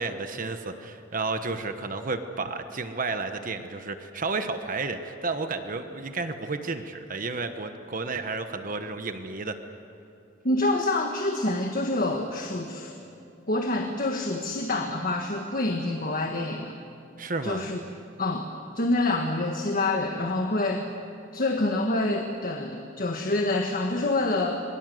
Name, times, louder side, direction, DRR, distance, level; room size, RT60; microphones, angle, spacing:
voice 1, 0.0-9.5 17.2-17.6, right 3 dB, 45° right, 8 dB, 1.2 m, -32 dB
voice 2, 10.4-12.9 13.5-16.7 17.4-17.8 18.2-18.5 18.7-20.9 21.3-24.6, left 2 dB, 45° left, 3 dB, 1.6 m, -27 dB
27.5 x 22.0 x 7.8 m, 2.7 s
head